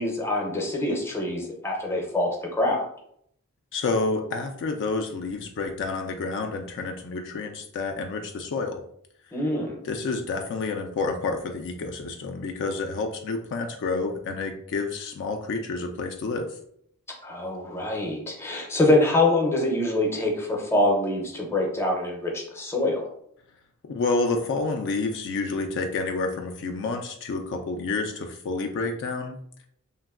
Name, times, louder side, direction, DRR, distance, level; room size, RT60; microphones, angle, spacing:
voice 1, 0.0-2.8 9.3-9.8 17.2-23.0, left 2 dB, 10° left, 0 dB, 0.6 m, -25 dB
voice 2, 3.7-8.8 9.8-16.6 23.9-29.4, left 3 dB, 55° left, 4 dB, 0.3 m, -29 dB
3.0 x 2.5 x 2.4 m, 0.69 s
head